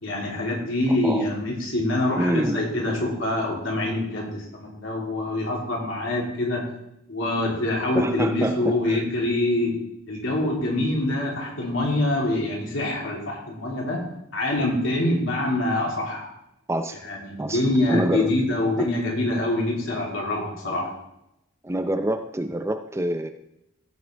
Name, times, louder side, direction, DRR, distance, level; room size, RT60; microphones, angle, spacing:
voice 1, 0.0-6.6 7.1-9.7 10.1-14.0 14.3-16.3 17.0-20.9, left 1 dB, 70° left, -3 dB, 3.3 m, -25 dB
voice 2, 0.9-1.3 2.2-2.7 7.9-9.0 16.7-17.0 17.4-17.6 17.9-18.3 18.8-18.9 21.6-23.3, right 1 dB, 15° right, 8 dB, 0.5 m, -26 dB
15.5 x 7.6 x 3.5 m, 0.83 s
head